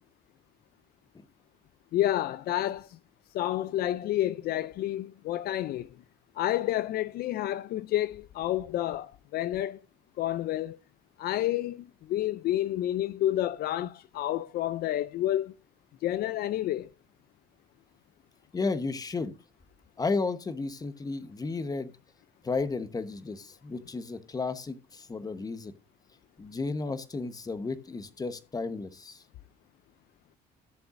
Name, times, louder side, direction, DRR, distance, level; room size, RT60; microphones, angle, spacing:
voice 1, 1.9-2.9 3.3-5.9 6.4-9.8 10.2-10.8 11.2-15.5 16.0-16.9, left 13 dB, 65° left, 0.5 m, -29 dB
voice 2, 18.5-19.3 20.0-21.9 22.4-25.7 26.4-29.2, left 3 dB, 20° left, 1.1 m, -33 dB
15.5 x 6.9 x 2.6 m
cardioid pair, 110°, 17 cm